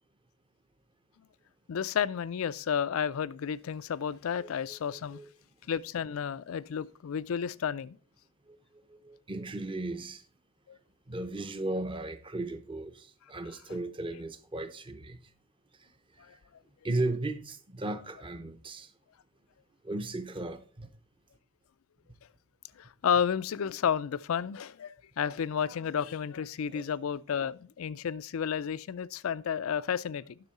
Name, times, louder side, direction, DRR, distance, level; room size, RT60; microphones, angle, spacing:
voice 1, 1.7-5.2 5.7-8.0 10.7-10.8 16.2-16.3 22.8-30.4, left 7 dB, 75° left, 0.4 m, -32 dB
voice 2, 4.4-5.3 8.5-8.6 8.9-10.2 11.1-15.3 15.8-15.9 16.2-16.4 16.8-18.9 19.8-20.9 26.7-26.8, right 2 dB, 25° right, 0.7 m, -36 dB
11.0 x 6.2 x 4.1 m
head